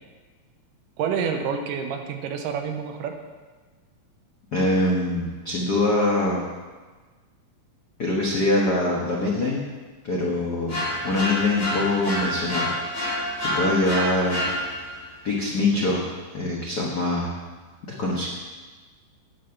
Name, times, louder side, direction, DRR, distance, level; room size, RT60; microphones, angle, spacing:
voice 1, 1.0-3.2, right 6 dB, 80° right, 5 dB, 2.4 m, -28 dB
voice 2, 4.5-6.4 8.0-9.6 10.0-12.7 13.4-14.4 15.2-17.3 18.0-18.3, left 2 dB, 70° left, -4 dB, 0.9 m, -24 dB
sound 1, 10.7-15.0, equal, 15° left, 3.4 m, -28 dB
10.0 x 7.8 x 5.8 m, 1.4 s
omnidirectional pair, 3.9 m